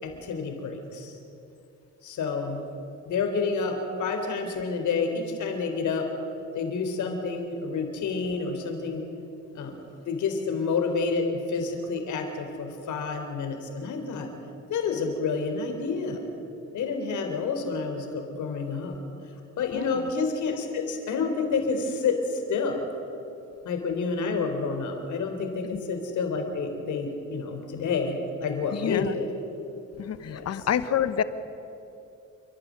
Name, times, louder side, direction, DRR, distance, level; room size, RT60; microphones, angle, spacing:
voice 1, 0.0-1.2 2.0-2.7 3.1-6.1 6.5-9.1 9.5-9.8 10.1-14.3 14.7-16.2 16.7-19.0 19.6-22.8 23.6-29.3 30.2-30.7, left 4 dB, 75° left, 5 dB, 3.7 m, -29 dB
voice 2, 28.7-29.1 30.0-30.2 30.4-31.2, left 9 dB, 55° left, 13 dB, 1.2 m, -27 dB
28.5 x 12.0 x 9.5 m, 2.8 s
cardioid pair, 90°, 30 cm